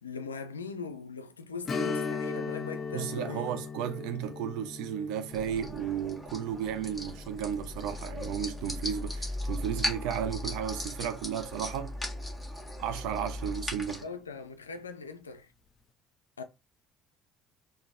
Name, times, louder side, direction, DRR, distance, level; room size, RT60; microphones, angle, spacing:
voice 1, 0.0-3.5 14.0-15.5 16.4-16.5, left 4 dB, 80° left, 0.4 m, -40 dB
Strum, 1.7-10.9 11.2-11.3 13.8-14.0 14.4-14.5, left 5 dB, 35° left, 0.6 m, -39 dB
voice 2, 2.9-11.9 12.8-14.0, right 9 dB, 60° right, 0.6 m, -34 dB
sound 1, 5.3-14.0, left 1 dB, 5° left, 1.5 m, -37 dB
3.9 x 2.6 x 3.4 m
figure-of-eight pair, 55°, 0 cm